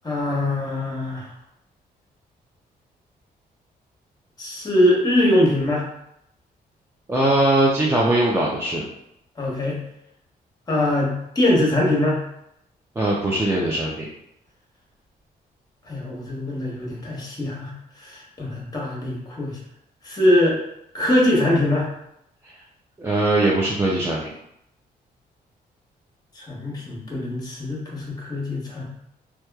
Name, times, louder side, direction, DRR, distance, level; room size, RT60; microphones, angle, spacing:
voice 1, 0.0-1.3 4.4-5.9 9.4-9.8 10.7-12.2 15.9-17.7 18.0-19.6 20.0-20.6 20.9-21.9 26.4-28.8, left 1 dB, 25° left, -3 dB, 1.0 m, -22 dB
voice 2, 7.1-8.8 13.0-14.1 23.0-24.3, right 1 dB, 15° right, -5 dB, 0.4 m, -20 dB
2.9 x 2.2 x 2.2 m, 0.79 s
cardioid pair, 100°, 16 cm